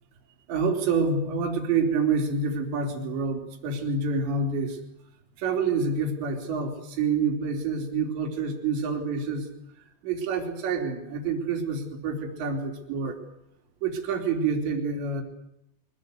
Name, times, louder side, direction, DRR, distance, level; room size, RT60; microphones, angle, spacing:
voice 1, 0.5-4.8 5.4-9.5 9.8-13.2 13.8-15.2, right 4 dB, 70° right, 4 dB, 5.2 m, -27 dB
24.0 x 21.0 x 8.0 m, 0.84 s
omnidirectional pair, 5.4 m